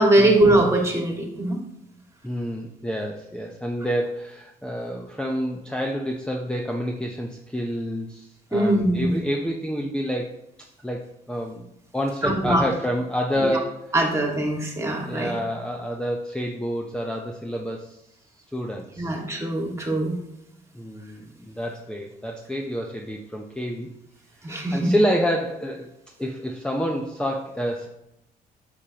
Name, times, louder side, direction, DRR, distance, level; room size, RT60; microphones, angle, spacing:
voice 1, 0.0-1.6 8.5-9.2 12.2-12.6 13.3-13.6 13.9-15.3 19.0-20.2 24.4-24.9, right 1 dB, 15° right, 1 dB, 2.1 m, -21 dB
voice 2, 2.2-10.3 10.8-11.0 11.3-13.9 15.1-18.0 18.5-19.2 20.7-23.9 24.4-25.9 26.2-27.9, equal, 5° left, 1 dB, 0.9 m, -28 dB
8.1 x 7.0 x 3.0 m, 0.84 s
cardioid pair, 85°, 16 cm